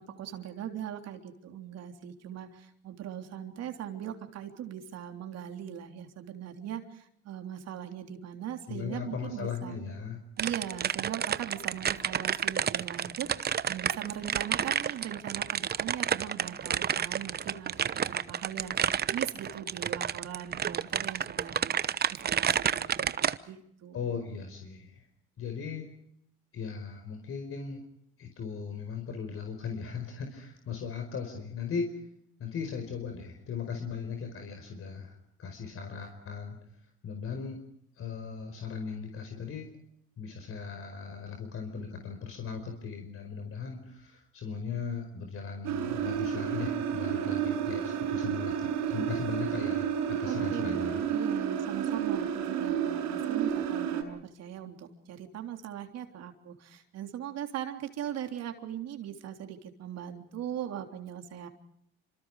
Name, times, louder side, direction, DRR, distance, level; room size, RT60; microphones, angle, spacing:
voice 1, 0.0-9.8 10.4-24.2 50.3-61.5, right 10 dB, 60° right, 5 dB, 3.5 m, -40 dB
voice 2, 8.7-10.2 23.9-25.0 25.4-25.9 26.5-27.8 28.2-31.9 32.4-36.6 37.0-37.6 38.0-39.7 40.2-51.0, left 5 dB, 50° left, 4 dB, 5.0 m, -38 dB
sound 1, 10.4-23.4, right 8 dB, 35° right, 1.0 m, -30 dB
sound 2, 45.6-54.0, right 9 dB, 75° right, 5.9 m, -31 dB
29.0 x 26.5 x 5.0 m, 0.69 s
cardioid pair, 110°, 29 cm